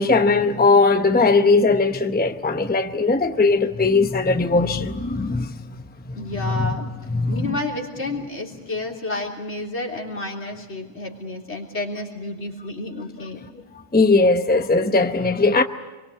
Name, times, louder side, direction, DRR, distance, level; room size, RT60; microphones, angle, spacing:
voice 1, 0.0-5.5 6.4-6.7 7.1-7.4 13.9-15.6, left 3 dB, 10° left, 0.8 m, -19 dB
voice 2, 6.1-6.9 7.3-13.5, left 2 dB, 80° left, 3.9 m, -30 dB
27.0 x 23.0 x 8.5 m
omnidirectional pair, 1.1 m